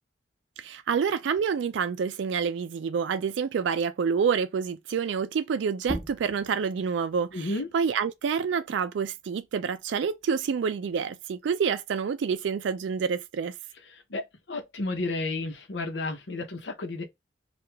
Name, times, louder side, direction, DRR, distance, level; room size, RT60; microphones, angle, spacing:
voice 1, 0.6-7.3 7.7-13.5, right 6 dB, 85° right, 0.3 m, -28 dB
sound 1, 5.8-11.0 11.4-13.2, right 1 dB, 10° right, 0.8 m, -43 dB
voice 2, 7.3-7.7 13.7-17.0, left 2 dB, 80° left, 0.8 m, -32 dB
4.7 x 2.4 x 3.4 m
head